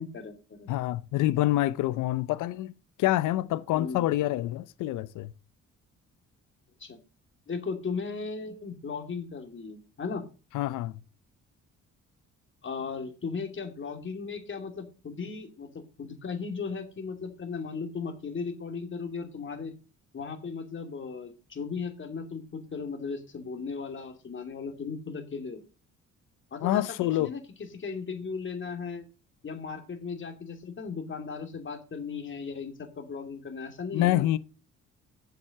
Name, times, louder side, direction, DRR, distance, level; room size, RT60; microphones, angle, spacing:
voice 1, 0.0-0.7 1.2-1.5 3.7-4.1 6.8-7.0 7.5-10.2 12.6-19.7 20.1-25.6 26.5-27.4 27.7-29.0 29.4-34.3, left 5 dB, 40° left, 2.9 m, -36 dB
voice 2, 0.7-2.7 3.0-5.3 10.5-10.9 26.6-27.3 33.9-34.4, left 15 dB, 90° left, 0.7 m, -26 dB
7.8 x 7.4 x 6.5 m
cardioid pair, 90°, 30 cm